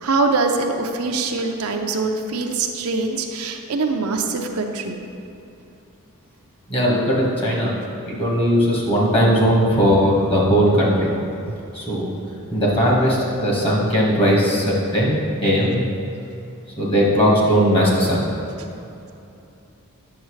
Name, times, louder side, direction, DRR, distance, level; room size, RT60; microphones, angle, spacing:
voice 1, 0.0-5.0, right 3 dB, 70° right, 3 dB, 0.6 m, -23 dB
voice 2, 6.7-7.7 8.1-11.1 11.7-12.1 12.5-15.8 16.8-18.3, equal, 25° left, -4 dB, 1.6 m, -18 dB
9.1 x 6.5 x 3.2 m, 2.8 s
head